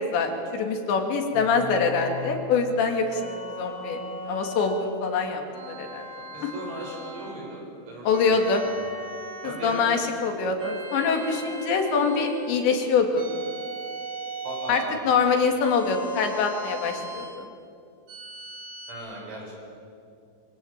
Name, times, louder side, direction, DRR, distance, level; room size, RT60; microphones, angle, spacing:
voice 1, 0.0-3.2 3.6-6.5 8.0-8.6 9.4-13.3 14.7-17.5, left 5 dB, 70° left, 4 dB, 4.5 m, -25 dB
sound 1, 1.3-2.3 3.1-4.8 5.5-7.4 8.1-9.9 10.6-12.4 13.2-15.0 15.6-17.3 18.1-18.9, equal, 50° right, 6.7 m, -38 dB
voice 2, 6.3-8.8 9.4-9.9 14.4-15.0 18.9-19.5, right 1 dB, 80° right, -1 dB, 9.7 m, -37 dB
25.0 x 24.5 x 8.9 m, 2.4 s
omnidirectional pair, 5.4 m